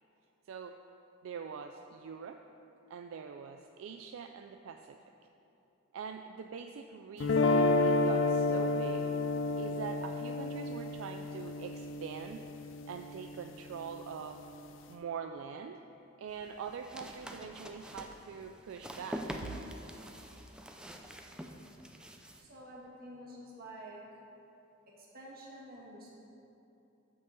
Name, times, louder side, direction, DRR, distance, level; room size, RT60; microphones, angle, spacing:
voice 1, 0.5-0.8 1.2-2.4 2.9-5.0 5.9-9.1 9.6-12.5 12.9-14.4 14.9-15.8 16.2-19.3, right 6 dB, 75° right, 6 dB, 0.3 m, -44 dB
sound 1, 7.2-13.3, left 2 dB, 65° left, 0.4 m, -30 dB
sound 2, 16.3-22.4, equal, 5° right, 0.4 m, -45 dB
voice 2, 22.4-24.0 24.9-26.1, right 1 dB, 50° right, -3 dB, 1.6 m, -49 dB
6.4 x 5.8 x 6.9 m, 2.9 s
head